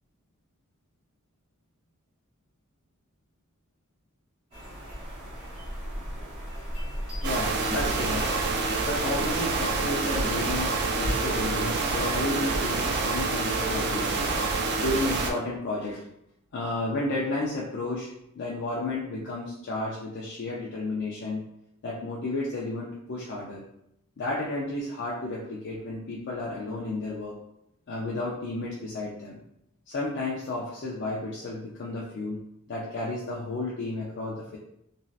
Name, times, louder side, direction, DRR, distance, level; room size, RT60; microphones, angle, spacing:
sound 1, 4.5-12.9, equal, 30° right, 1.5 m, -37 dB
voice 1, 7.2-8.3 8.8-14.3 14.8-16.0 16.5-18.1 18.4-21.4 21.8-23.6 24.2-27.3 27.9-29.4 29.9-32.4 32.7-34.6, left 2 dB, 55° left, -4 dB, 0.4 m, -32 dB
sound 2, 7.2-15.3, right 3 dB, 50° right, 0.4 m, -27 dB
3.1 x 2.7 x 2.4 m, 0.81 s
head